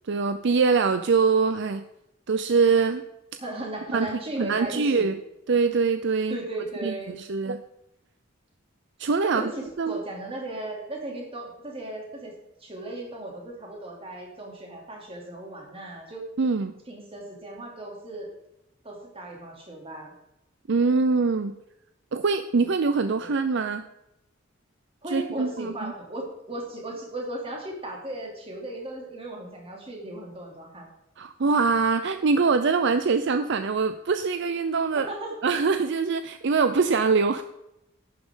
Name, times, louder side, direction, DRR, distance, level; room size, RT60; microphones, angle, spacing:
voice 1, 0.1-1.8 2.3-3.0 3.9-4.1 4.4-5.2 5.5-6.4 6.8-7.6 9.0-9.4 9.8-10.0 16.4-16.7 20.7-21.5 22.1-23.8 25.1-25.9 31.2-35.1 35.4-37.4, right 4 dB, 60° right, 9 dB, 0.5 m, -23 dB
voice 2, 3.4-5.1 6.3-7.1 9.0-12.3 12.6-16.3 16.9-18.3 18.8-20.1 22.6-22.7 23.2-23.3 25.0-30.9 34.9-35.3, right 1 dB, 30° right, 0 dB, 2.9 m, -36 dB
11.5 x 9.7 x 3.8 m, 0.88 s
head